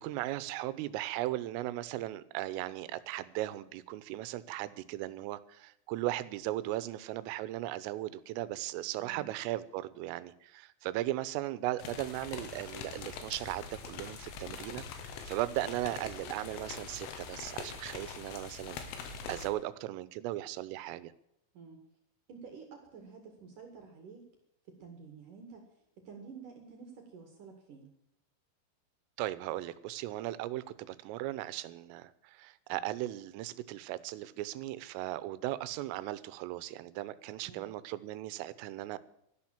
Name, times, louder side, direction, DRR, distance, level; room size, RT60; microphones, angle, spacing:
voice 1, 0.0-21.1 29.2-39.0, right 15 dB, 85° right, 16 dB, 3.4 m, -37 dB
voice 2, 9.0-9.3 21.5-21.8 22.3-24.2 24.7-25.6 26.0-27.9 37.4-37.7, right 5 dB, 50° right, 4 dB, 2.9 m, -50 dB
sound 1, 11.8-19.5, left 6 dB, 90° left, 4.5 m, -44 dB
13.0 x 12.0 x 7.3 m, 0.78 s
omnidirectional pair, 5.8 m